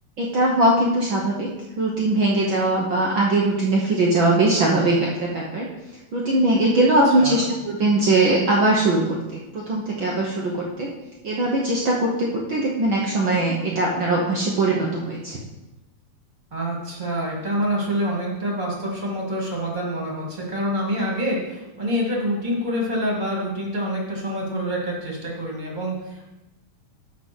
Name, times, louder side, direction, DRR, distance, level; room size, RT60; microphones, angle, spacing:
voice 1, 0.2-1.5 1.8-5.7 6.1-10.9 11.2-15.4, right 2 dB, 65° right, -3 dB, 1.2 m, -21 dB
voice 2, 16.5-26.3, equal, 15° right, -2 dB, 1.8 m, -26 dB
7.2 x 6.1 x 6.1 m, 1.0 s
omnidirectional pair, 3.6 m